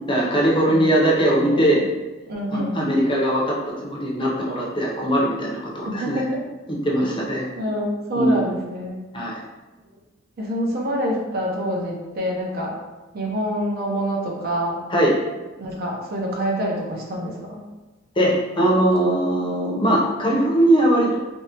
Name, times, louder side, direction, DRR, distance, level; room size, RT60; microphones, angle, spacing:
voice 1, 0.1-1.8 2.5-6.2 6.7-7.5 8.2-8.4 9.1-9.4 14.9-15.1 18.2-21.2, right 1 dB, 25° left, -3 dB, 0.6 m, -20 dB
voice 2, 0.7-1.8 2.3-2.8 5.8-6.4 7.6-9.0 10.4-12.8 13.1-14.8 15.6-17.6, equal, 55° right, -1 dB, 0.6 m, -26 dB
3.5 x 2.1 x 2.7 m, 1.2 s
head